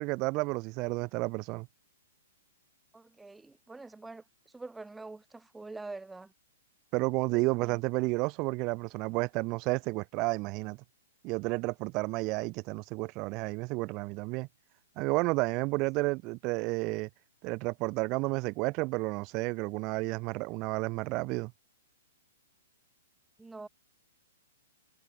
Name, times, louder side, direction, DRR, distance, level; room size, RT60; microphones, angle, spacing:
voice 1, 0.0-1.7 6.9-10.8 11.2-14.5 15.0-17.1 17.4-21.5, right 25 dB, 30° right, 0.4 m, -31 dB
voice 2, 2.9-6.3 7.3-7.8 23.4-23.7, right 3 dB, 5° right, 0.9 m, -45 dB
hypercardioid pair, 150°, 0 cm